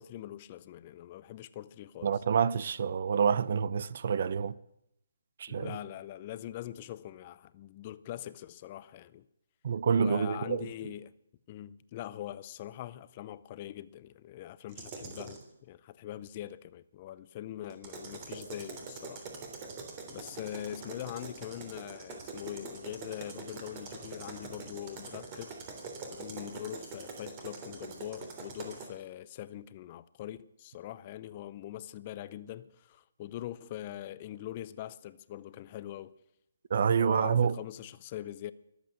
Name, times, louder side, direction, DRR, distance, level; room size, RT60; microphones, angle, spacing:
voice 1, 0.0-2.2 5.5-9.3 9.9-11.1 11.5-19.2 20.1-25.6 26.0-36.1 37.0-38.5, left 12 dB, 30° left, 0.6 m, -43 dB
voice 2, 2.0-4.5 5.4-5.7 9.6-10.7 36.7-37.6, right 7 dB, 50° right, 0.7 m, -27 dB
sound 1, 14.7-15.4 17.7-28.9, right 4 dB, 30° right, 3.3 m, -44 dB
22.5 x 8.2 x 7.7 m
hypercardioid pair, 155°, 0 cm